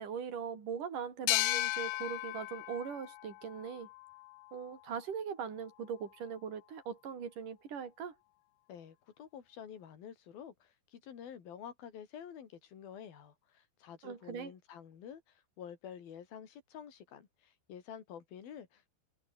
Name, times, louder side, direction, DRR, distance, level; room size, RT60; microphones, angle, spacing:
voice 1, 0.0-3.9 4.5-8.2 14.0-14.5, right 7 dB, 50° right, 5.6 m, -40 dB
sound 1, 1.3-4.6, left 22 dB, 80° left, 2.4 m, -36 dB
voice 2, 8.7-18.9, left 8 dB, 60° left, 4.8 m, -49 dB
omnidirectional pair, 4.9 m